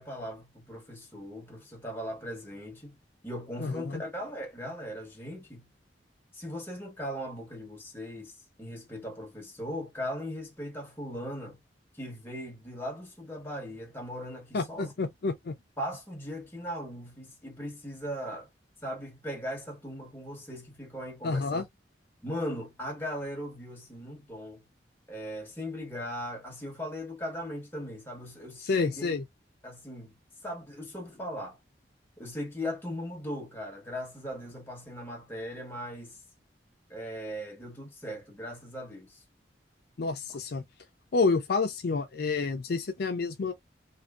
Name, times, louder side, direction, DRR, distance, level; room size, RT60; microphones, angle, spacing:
voice 1, 0.0-3.0 3.2-5.7 6.3-8.3 8.6-11.6 12.0-14.9 15.8-18.5 18.8-21.6 22.2-24.6 25.1-29.1 29.6-30.1 30.4-31.6 32.2-36.2 36.9-39.2, equal, 10° left, 1.1 m, -38 dB
voice 2, 3.6-4.0 14.5-15.6 21.2-21.6 28.6-29.2 40.0-40.6 41.1-43.5, left 4 dB, 60° left, 0.5 m, -29 dB
2.7 x 2.5 x 2.3 m
head